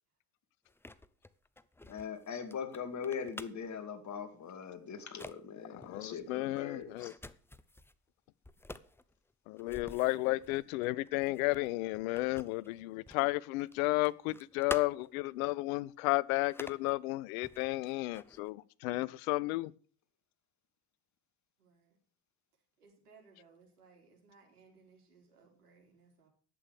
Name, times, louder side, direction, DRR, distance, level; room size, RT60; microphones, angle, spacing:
sound 1, 0.7-3.8 4.5-4.7 5.0-5.4 5.8-8.0 8.4-13.3 13.6-15.3 15.7-15.8 16.4-16.9 17.4-18.5, left 2 dB, 5° left, 0.6 m, -48 dB
voice 1, 1.9-7.1 10.2-10.3, left 6 dB, 40° left, 2.4 m, -41 dB
voice 2, 5.7-7.1 9.5-19.7, left 20 dB, 65° left, 0.6 m, -33 dB
voice 3, 21.6-22.0 22.8-26.3, right 4 dB, 80° right, 3.9 m, -62 dB
11.0 x 8.5 x 6.6 m
hypercardioid pair, 65°, 45 cm